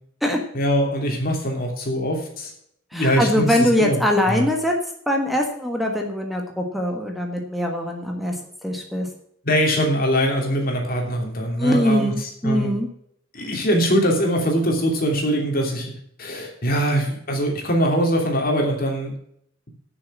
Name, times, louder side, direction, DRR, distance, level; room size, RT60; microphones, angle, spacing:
voice 1, 0.5-2.5 2.9-4.0 4.3-4.5 9.4-12.7 13.3-15.9 16.2-19.1, equal, 50° left, 1 dB, 3.0 m, -22 dB
voice 2, 2.9-4.7 5.1-8.3 8.6-9.1 11.6-12.9, equal, ahead, 1 dB, 1.4 m, -22 dB
10.0 x 6.9 x 7.3 m, 0.68 s
head